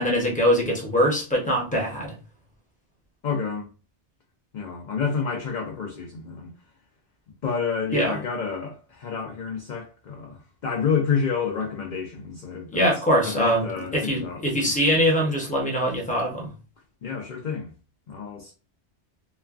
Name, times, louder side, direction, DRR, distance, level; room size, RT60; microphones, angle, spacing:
voice 1, 0.0-2.2 7.9-8.2 12.7-13.6 13.9-16.5, equal, 10° left, 0.6 m, -23 dB
voice 2, 3.2-3.7 4.5-6.5 7.4-12.8 13.2-14.4 17.0-17.7 18.1-18.5, left 6 dB, 55° left, 0.5 m, -29 dB
3.0 x 2.2 x 2.4 m
omnidirectional pair, 1.2 m